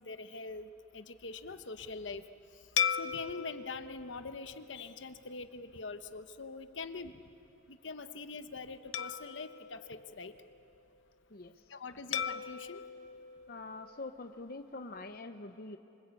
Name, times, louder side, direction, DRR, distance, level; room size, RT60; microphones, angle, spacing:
voice 1, 0.0-2.2 3.0-7.1 7.7-10.3 11.7-12.8, left 4 dB, 75° left, 10 dB, 1.0 m, -43 dB
sound 1, 2.8-5.4 6.0-6.2 8.9-10.7 12.1-14.4, left 8 dB, 90° left, 0.6 m, -38 dB
voice 2, 13.5-15.8, left 2 dB, 50° left, 7 dB, 0.8 m, -44 dB
26.5 x 24.5 x 8.3 m, 2.8 s
head